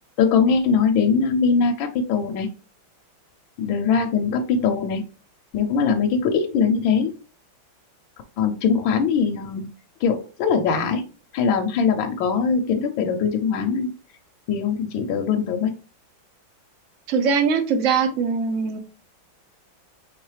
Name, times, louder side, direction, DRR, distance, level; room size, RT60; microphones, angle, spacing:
voice 1, 0.2-2.5 3.6-5.0 5.5-7.1 8.4-9.7 10.0-11.0 11.3-13.9 14.5-15.7, left 5 dB, 80° left, 4 dB, 1.3 m, -21 dB
voice 2, 17.1-18.8, right 5 dB, 75° right, 8 dB, 0.7 m, -21 dB
4.7 x 3.5 x 3.1 m, 0.34 s
omnidirectional pair, 2.1 m